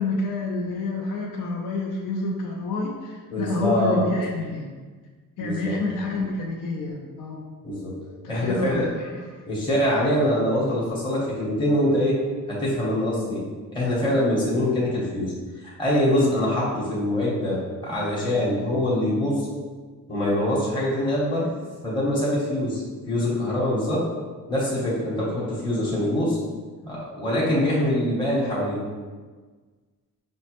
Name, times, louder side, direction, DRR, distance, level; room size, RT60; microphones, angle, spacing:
voice 1, 0.0-4.7 5.4-7.4 8.2-9.4, left 2 dB, 65° left, -1 dB, 0.5 m, -28 dB
voice 2, 3.3-4.1 5.4-5.8 7.6-8.9 9.4-12.2 12.5-13.4 13.7-19.5 20.1-21.5 21.8-24.0 24.5-26.4 26.8-28.8, left 1 dB, 15° left, -7 dB, 0.8 m, -24 dB
5.2 x 2.1 x 2.9 m, 1.4 s
cardioid pair, 140°, 34 cm